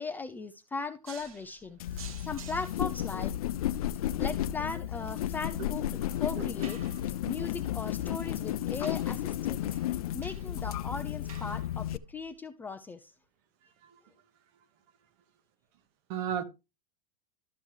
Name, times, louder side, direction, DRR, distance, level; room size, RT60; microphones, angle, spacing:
voice 1, 0.0-1.8 2.2-3.3 4.2-5.8 6.2-6.8 7.3-9.7 10.1-13.1, left 4 dB, 10° left, 0.4 m, -38 dB
sound 1, 1.0-12.3, right 6 dB, 80° right, 1.6 m, -53 dB
sound 2, 1.8-12.0, left 12 dB, 80° left, 0.4 m, -33 dB
voice 2, 13.6-14.0 16.1-16.4, right 9 dB, 45° right, 1.1 m, -36 dB
12.5 x 6.3 x 3.1 m
supercardioid pair, 140°, 18 cm